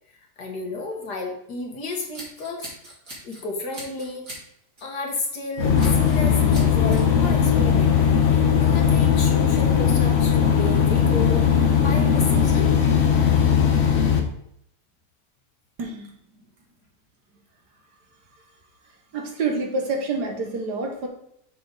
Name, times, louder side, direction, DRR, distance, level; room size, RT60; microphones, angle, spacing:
voice 1, 0.4-2.7 3.2-4.3 4.8-12.7, left 3 dB, 70° left, 1 dB, 2.0 m, -32 dB
Scissors, 1.9-3.4 3.7-4.4 4.8-5.0 5.8-6.2 6.5-7.0, right 1 dB, 50° right, 3.1 m, -40 dB
sound 1, 5.6-14.2, left 7 dB, 50° left, 1.2 m, -19 dB
voice 2, 15.8-16.1 19.1-21.1, right 3 dB, 75° right, 2 dB, 1.9 m, -27 dB
6.7 x 5.5 x 4.0 m, 0.72 s
omnidirectional pair, 1.8 m